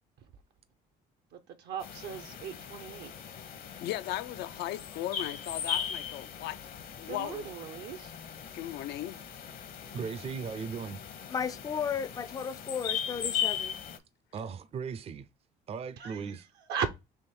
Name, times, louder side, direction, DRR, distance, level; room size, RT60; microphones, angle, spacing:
voice 1, 1.6-3.1 7.1-8.1 16.0-16.2 16.7-16.9, right 7 dB, 70° right, 0.7 m, -37 dB
sound 1, 1.8-14.0, left 9 dB, 55° left, 0.9 m, -38 dB
voice 2, 3.8-6.6 7.0-7.4 8.5-9.2, left 14 dB, 80° left, 0.5 m, -37 dB
voice 3, 9.9-11.0 14.3-15.3 15.7-16.5, right 6 dB, 35° right, 0.5 m, -37 dB
voice 4, 11.3-13.8 16.1-16.3, left 7 dB, 20° left, 0.3 m, -35 dB
3.5 x 3.0 x 4.3 m
cardioid pair, 110°, 17 cm